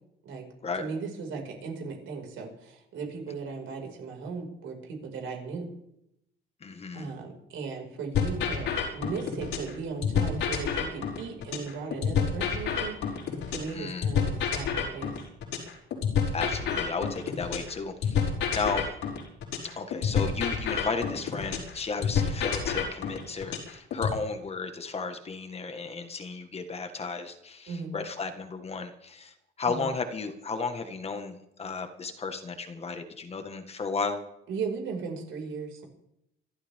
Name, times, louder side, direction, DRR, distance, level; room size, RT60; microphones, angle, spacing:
voice 1, 0.8-5.7 6.9-15.2 27.7-27.9 29.6-29.9 34.5-35.9, right 5 dB, 75° right, 1 dB, 5.7 m, -37 dB
voice 2, 6.6-7.1 13.7-14.1 16.3-18.9 19.6-34.2, left 4 dB, 30° left, 7 dB, 1.7 m, -34 dB
sound 1, 8.1-9.7 10.0-13.7 14.0-17.7 18.0-21.7 22.0-24.1, left 7 dB, 90° left, 5.3 m, -28 dB
26.5 x 13.0 x 3.7 m, 0.79 s
cardioid pair, 150°, 21 cm